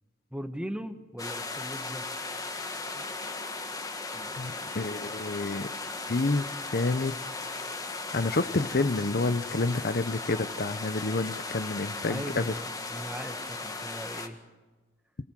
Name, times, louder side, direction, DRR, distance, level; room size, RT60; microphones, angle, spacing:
voice 1, 0.3-2.1 4.1-4.4 12.1-14.4, equal, 5° right, 8 dB, 1.4 m, -39 dB
sound 1, 1.2-14.3, left 3 dB, 20° left, 1.8 m, -37 dB
voice 2, 4.4-5.7 6.1-7.1 7.4-7.5 8.1-12.5, left 3 dB, 55° left, 13 dB, 0.7 m, -29 dB
27.5 x 18.0 x 7.5 m, 1.2 s
head